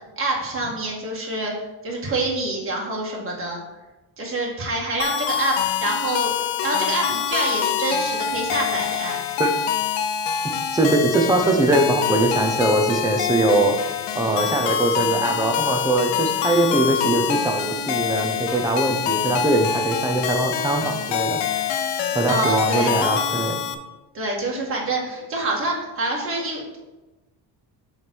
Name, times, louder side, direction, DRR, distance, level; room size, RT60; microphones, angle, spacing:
voice 1, 0.2-1.5 1.8-3.6 4.2-6.3 6.6-9.2 22.3-22.9 24.1-26.8, right 2 dB, 30° right, -2 dB, 1.7 m, -26 dB
sound 1, 5.0-23.7, left 8 dB, 75° left, 0.7 m, -25 dB
voice 2, 10.7-21.7 22.1-23.7, right 2 dB, 10° right, 3 dB, 0.6 m, -22 dB
6.9 x 3.4 x 6.2 m, 1.1 s
cardioid pair, 170°, 43 cm